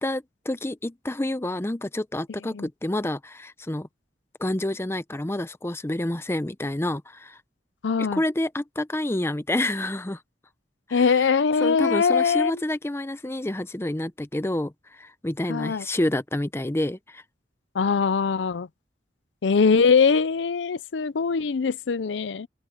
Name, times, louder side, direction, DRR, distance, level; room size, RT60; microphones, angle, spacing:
voice 1, 0.0-3.9 4.4-7.4 8.0-10.2 10.9-11.2 11.6-17.2, left 1 dB, 15° left, 0.6 m, -28 dB
voice 2, 7.8-8.2 10.9-12.6 15.5-15.9 17.7-18.7 19.4-22.5, left 5 dB, 80° left, 0.5 m, -22 dB
open air
head